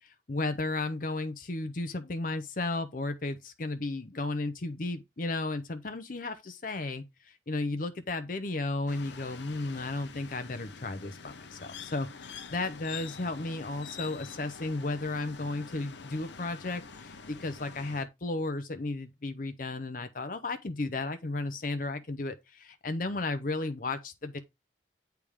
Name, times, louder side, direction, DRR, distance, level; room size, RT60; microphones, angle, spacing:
voice 1, 0.0-24.4, left 2 dB, 45° left, 0.7 m, -34 dB
sound 1, 8.9-18.1, left 5 dB, 75° left, 0.9 m, -46 dB
8.7 x 3.5 x 4.8 m
head